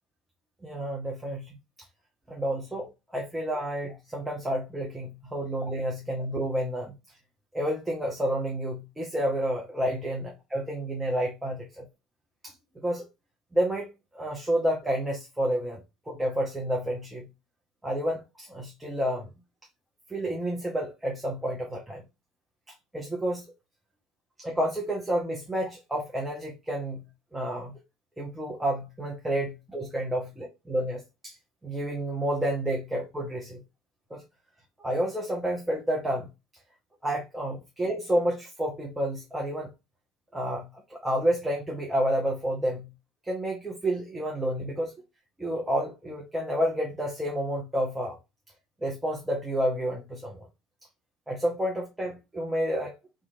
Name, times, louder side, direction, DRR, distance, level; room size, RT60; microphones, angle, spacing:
voice 1, 0.6-1.5 2.3-7.0 7.5-11.8 12.4-12.5 12.8-13.0 13.5-15.8 16.1-17.3 17.8-19.3 20.1-22.0 22.9-23.5 24.4-27.0 27.3-27.7 28.2-31.4 31.6-33.6 34.1-34.2 34.8-36.3 37.0-39.7 40.3-42.9 43.2-44.9 45.4-48.2 48.8-50.5 51.3-53.0, equal, 10° right, 0.7 m, -30 dB
2.8 x 2.4 x 2.5 m
hypercardioid pair, 65°, 0 cm